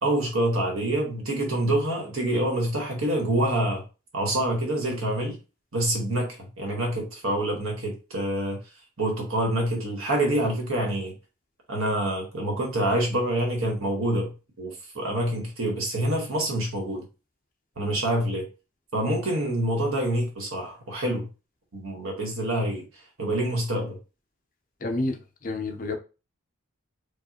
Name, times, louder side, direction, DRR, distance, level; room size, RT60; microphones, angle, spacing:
voice 1, 0.0-3.8 4.1-5.4 5.7-8.6 9.0-11.1 11.7-14.3 14.6-17.0 17.8-18.5 18.9-21.3 21.7-22.8 23.2-24.0, right 1 dB, 70° right, 1.4 m, -26 dB
voice 2, 24.8-25.2 25.4-26.0, left 2 dB, 35° left, 0.5 m, -28 dB
4.8 x 2.4 x 2.9 m
head